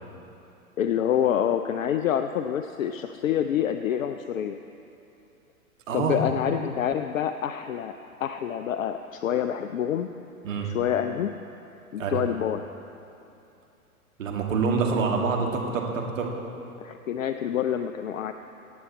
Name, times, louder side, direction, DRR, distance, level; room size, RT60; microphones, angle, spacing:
voice 1, 0.8-4.6 5.9-8.0 8.2-10.1 10.6-11.3 11.9-12.7 16.8-18.3, left 9 dB, 65° left, 8 dB, 0.5 m, -27 dB
voice 2, 5.9-6.2 10.4-10.7 12.0-12.2 14.2-16.3, right 4 dB, 60° right, 0 dB, 1.9 m, -26 dB
15.5 x 9.3 x 4.3 m, 2.8 s
figure-of-eight pair, 105°, 44 cm